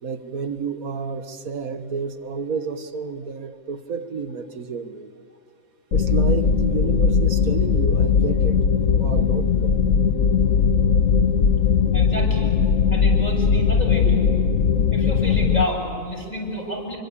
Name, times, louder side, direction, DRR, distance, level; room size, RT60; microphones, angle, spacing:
voice 1, 0.0-5.1 5.9-9.8, right 5 dB, 85° right, 9 dB, 1.9 m, -31 dB
sound 1, 5.9-15.6, left 6 dB, 80° left, 1.4 m, -19 dB
voice 2, 11.9-12.5 12.9-14.3 14.9-17.0, left 1 dB, 30° left, 0 dB, 7.5 m, -29 dB
28.5 x 24.5 x 8.6 m, 2.5 s
omnidirectional pair, 1.4 m